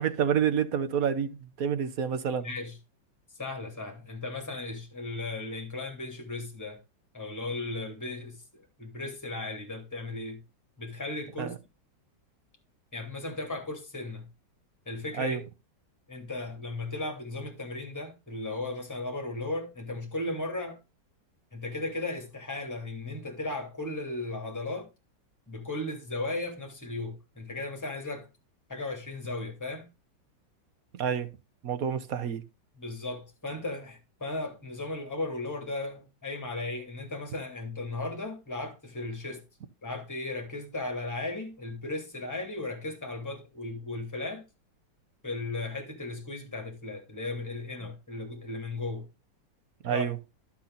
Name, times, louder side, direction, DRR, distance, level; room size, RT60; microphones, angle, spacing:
voice 1, 0.0-2.5 11.4-11.6 15.2-15.4 30.9-31.3 31.6-32.4 49.8-50.2, right 8 dB, 55° right, 1.3 m, -28 dB
voice 2, 2.4-2.7 3.4-6.8 7.1-10.4 10.8-11.5 12.9-14.3 14.9-15.4 16.1-20.8 21.5-24.9 25.5-28.3 28.7-29.9 32.8-39.5 39.8-44.4 45.2-49.1 49.9-50.0, left 2 dB, 10° left, 2.8 m, -36 dB
11.5 x 5.8 x 4.0 m
omnidirectional pair, 2.0 m